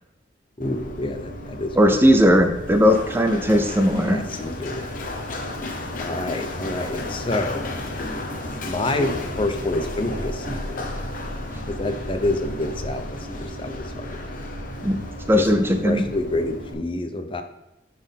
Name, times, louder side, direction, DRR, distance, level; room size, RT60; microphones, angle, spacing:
Run, 0.6-16.7, left 1 dB, 50° left, 1.1 m, -33 dB
voice 1, 0.6-2.0 4.0-4.9 6.0-7.7 8.6-10.8 11.7-14.2 15.3-17.4, left 2 dB, 30° left, 7 dB, 0.6 m, -28 dB
voice 2, 1.8-4.2 14.8-15.0 15.3-16.0, equal, 10° right, 6 dB, 0.5 m, -18 dB
9.4 x 4.2 x 3.5 m, 0.95 s
head